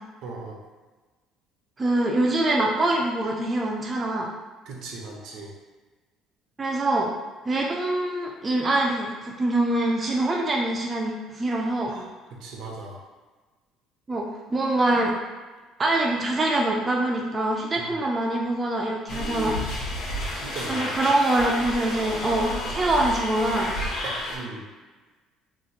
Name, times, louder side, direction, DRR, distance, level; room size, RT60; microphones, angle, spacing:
voice 1, 0.2-0.6 4.7-5.5 11.9-13.0 17.8-17.9 19.1-19.7 20.3-20.9 24.0-24.7, right 3 dB, 75° right, -1 dB, 0.7 m, -38 dB
voice 2, 1.8-4.3 6.6-7.1 7.5-11.9 14.1-15.1 15.8-19.5 20.7-23.7, right 2 dB, 25° right, -1 dB, 0.4 m, -24 dB
sound 1, 19.1-24.4, left 1 dB, 75° left, 1.1 m, -31 dB
2.9 x 2.0 x 4.0 m, 1.3 s
cardioid pair, 125°, 0 cm